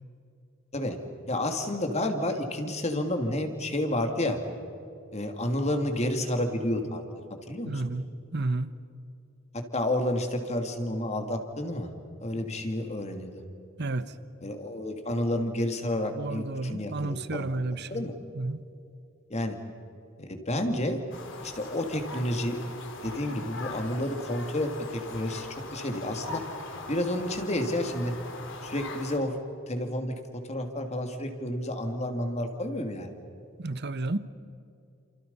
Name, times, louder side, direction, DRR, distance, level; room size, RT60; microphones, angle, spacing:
voice 1, 1.3-4.4 5.1-7.0 7.5-7.8 9.5-11.9 12.2-13.4 14.4-17.5 17.9-18.1 19.3-19.6 20.2-21.0 21.4-22.6 23.0-26.4 26.9-28.1 28.6-29.4 29.7-33.1, left 1 dB, 35° left, 2.8 m, -30 dB
voice 2, 7.7-8.0 8.3-8.7 13.8-14.1 16.1-18.0 18.3-18.6 33.6-34.2, right 2 dB, 55° right, 1.2 m, -31 dB
sound 1, 21.1-29.2, left 3 dB, 65° left, 3.6 m, -41 dB
29.5 x 28.0 x 5.6 m
head